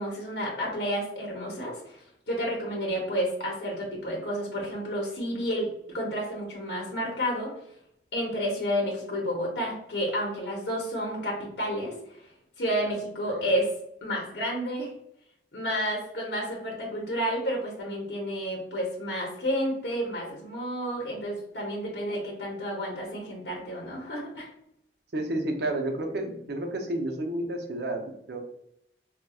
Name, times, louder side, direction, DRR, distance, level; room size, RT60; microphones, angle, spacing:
voice 1, 0.0-5.7 5.9-7.5 8.1-12.2 12.6-13.7 14.0-14.9 15.5-24.5, equal, 70° left, -3 dB, 0.8 m, -31 dB
voice 2, 25.1-28.4, right 1 dB, 65° right, 3 dB, 0.6 m, -31 dB
4.0 x 2.2 x 2.3 m, 0.75 s
head